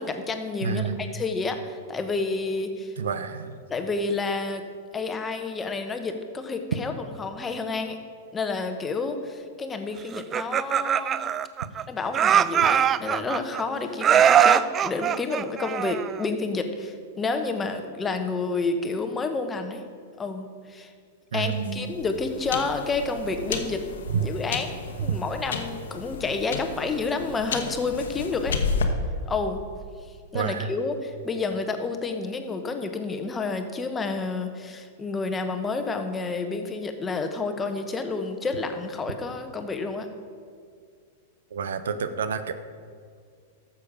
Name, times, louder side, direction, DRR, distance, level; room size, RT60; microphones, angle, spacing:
voice 1, 0.0-2.9 3.7-4.6 4.9-8.0 8.3-11.2 11.9-19.8 20.2-20.9 21.3-23.8 24.2-28.6 29.3-29.6 30.3-40.1, left 3 dB, 20° left, 6 dB, 1.1 m, -29 dB
voice 2, 0.6-1.2 3.0-3.5 21.3-21.9 24.1-24.3 25.1-25.2 30.3-30.7 41.5-42.5, right 6 dB, 75° right, 11 dB, 0.7 m, -28 dB
Laughter, 10.1-11.8 12.1-13.6 14.0-16.3, right 9 dB, 30° right, 0.3 m, -21 dB
sound 1, 21.5-28.8, left 5 dB, 75° left, 1.1 m, -33 dB
13.0 x 7.2 x 5.1 m, 2.1 s
hypercardioid pair, 110°, 0 cm